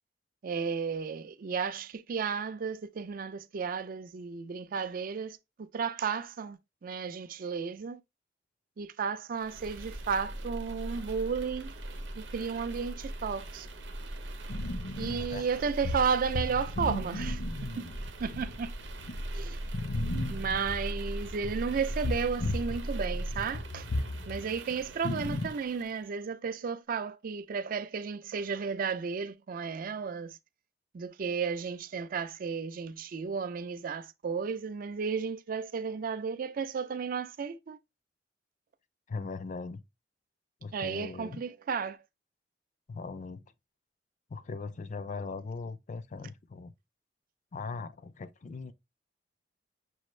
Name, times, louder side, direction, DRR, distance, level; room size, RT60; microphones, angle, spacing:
voice 1, 0.4-8.0 8.8-11.7 12.2-13.7 15.0-17.8 18.2-18.7 19.3-19.6 20.3-23.9 24.3-30.4 30.9-37.8 40.7-42.0, right 5 dB, 50° right, 0.4 m, -33 dB
sound 1, 9.4-26.1, right 1 dB, 80° right, 0.8 m, -40 dB
sound 2, 14.5-22.8 23.0-25.5, left 1 dB, 85° left, 0.8 m, -36 dB
voice 2, 39.1-39.8 40.6-41.4 42.9-43.4 44.3-46.7 47.5-48.7, left 4 dB, 45° left, 0.4 m, -39 dB
6.2 x 2.4 x 3.1 m
head